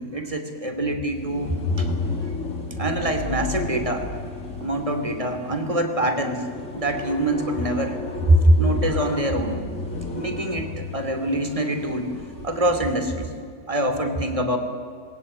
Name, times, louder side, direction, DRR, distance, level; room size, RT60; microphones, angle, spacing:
voice 1, 0.0-1.9 2.8-4.1 4.6-6.5 6.7-8.0 8.3-9.6 10.1-12.1 12.4-13.3 13.7-14.6, right 1 dB, 20° right, 6 dB, 2.8 m, -24 dB
sound 1, 1.1-13.1, left 3 dB, 50° left, 3.8 m, -33 dB
26.5 x 20.0 x 9.7 m, 2.1 s
omnidirectional pair, 1.7 m